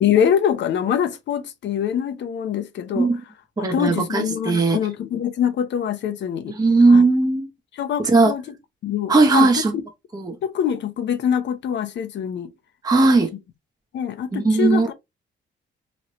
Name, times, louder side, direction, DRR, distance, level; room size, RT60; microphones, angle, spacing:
voice 1, 0.0-3.1 3.6-6.6 6.9-7.1 7.7-8.6 8.8-9.6 10.4-12.5 13.9-14.9, left 9 dB, 65° left, 0.7 m, -24 dB
voice 2, 3.6-4.8 6.6-7.5 8.0-8.3 9.1-9.7 10.1-10.4 12.8-13.3 14.3-14.9, right 3 dB, 20° right, 0.8 m, -17 dB
3.1 x 2.7 x 3.0 m
cardioid pair, 90°, 20 cm